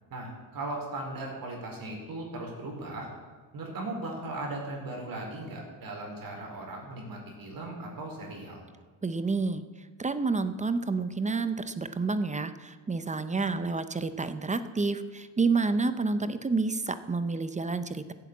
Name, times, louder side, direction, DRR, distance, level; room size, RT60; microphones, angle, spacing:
voice 1, 0.1-3.1 3.5-8.6, right 2 dB, 45° right, 0 dB, 4.7 m, -38 dB
voice 2, 9.0-9.6 10.0-18.1, right 4 dB, 15° right, 12 dB, 0.6 m, -29 dB
14.5 x 8.7 x 8.2 m, 1.5 s
cardioid pair, 120°, 48 cm